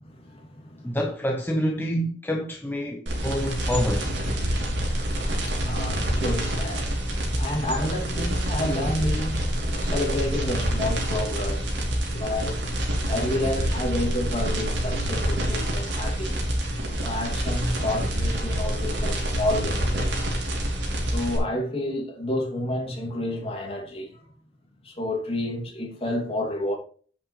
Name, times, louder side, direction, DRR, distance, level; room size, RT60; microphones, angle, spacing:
voice 1, 0.0-1.0 4.4-11.7 12.1-12.6 13.1-16.4 17.0-20.2 21.0-24.3 24.8-26.8, left 1 dB, 35° left, 2.8 m, -30 dB
voice 2, 0.8-4.1, equal, 10° left, 0.9 m, -27 dB
sound 1, 3.1-21.4, equal, 80° right, 3.3 m, -27 dB
9.4 x 7.9 x 3.3 m
head